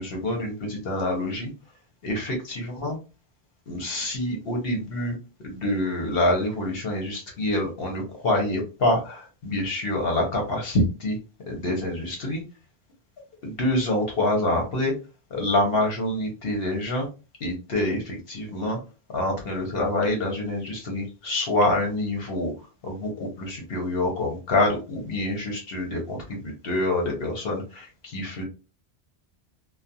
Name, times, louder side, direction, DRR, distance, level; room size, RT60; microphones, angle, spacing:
voice 1, 0.0-1.5 2.0-3.0 3.7-5.1 5.4-11.2 11.5-12.4 13.4-15.0 15.3-17.1 17.4-18.8 19.1-22.5 22.8-28.4, left 1 dB, 65° left, 1 dB, 0.9 m, -26 dB
2.4 x 2.2 x 2.6 m, 0.31 s
omnidirectional pair, 1.1 m